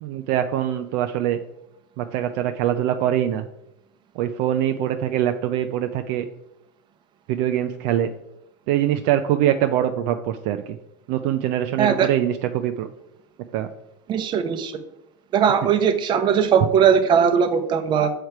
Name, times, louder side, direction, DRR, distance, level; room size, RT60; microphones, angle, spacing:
voice 1, 0.0-1.4 2.0-3.4 4.2-6.3 7.3-8.1 8.7-10.8 11.1-12.9 13.5-13.7, right 11 dB, 65° right, 7 dB, 0.5 m, -23 dB
voice 2, 11.8-12.1 14.1-14.7 15.3-18.1, right 7 dB, 40° right, 9 dB, 0.8 m, -19 dB
6.5 x 4.5 x 4.6 m, 0.83 s
supercardioid pair, 115°, 12 cm